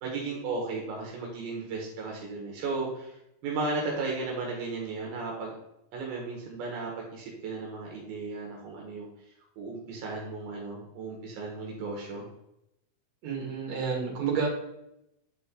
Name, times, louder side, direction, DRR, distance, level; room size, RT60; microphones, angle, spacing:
voice 1, 0.0-3.2 3.4-5.6 5.9-9.1 9.6-12.3, right 3 dB, 75° right, -1 dB, 3.0 m, -35 dB
voice 2, 13.2-14.5, right 5 dB, 50° right, -2 dB, 2.9 m, -30 dB
8.9 x 4.3 x 3.7 m, 0.82 s
omnidirectional pair, 4.4 m